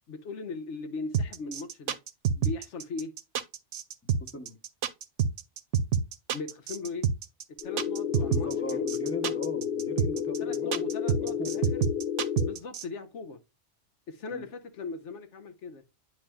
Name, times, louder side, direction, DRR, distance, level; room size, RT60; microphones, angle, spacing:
voice 1, 0.1-2.0 2.3-3.1 6.3-7.1 7.5-8.9 9.2-9.3 10.4-11.6 12.4-13.4 14.1-15.8, left 4 dB, 75° left, 1.1 m, -39 dB
sound 1, 1.1-12.8, right 7 dB, 85° right, 1.0 m, -27 dB
voice 2, 4.2-4.6 8.1-10.8 11.2-11.6 14.3-14.4, equal, 15° left, 0.7 m, -40 dB
sound 2, 7.6-12.6, left 8 dB, 60° left, 0.9 m, -31 dB
9.9 x 4.7 x 2.2 m
omnidirectional pair, 1.2 m